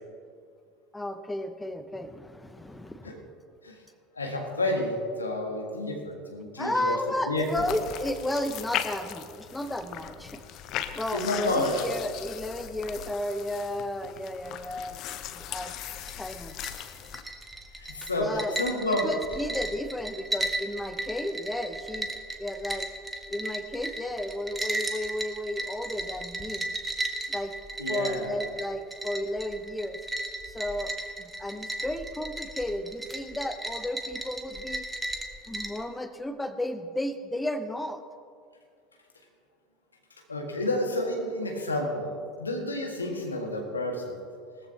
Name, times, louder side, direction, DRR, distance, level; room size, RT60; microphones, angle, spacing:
voice 1, 0.9-3.2 6.6-10.4 10.9-15.0 15.3-15.7 16.1-16.5 18.2-22.9 23.3-26.7 27.3-27.5 27.9-30.0 30.5-34.8 35.5-38.0, left 1 dB, 10° left, 10 dB, 0.8 m, -33 dB
voice 2, 4.2-7.0 7.3-7.7 11.1-11.8 17.8-19.5 27.8-28.4 40.3-44.2, left 1 dB, 85° left, 2 dB, 1.7 m, -30 dB
sound 1, 7.4-17.2, left 11 dB, 50° left, 0.8 m, -38 dB
sound 2, 15.9-35.8, right 1 dB, 10° right, 1.4 m, -35 dB
18.0 x 14.0 x 2.9 m, 2.2 s
figure-of-eight pair, 70°, 0 cm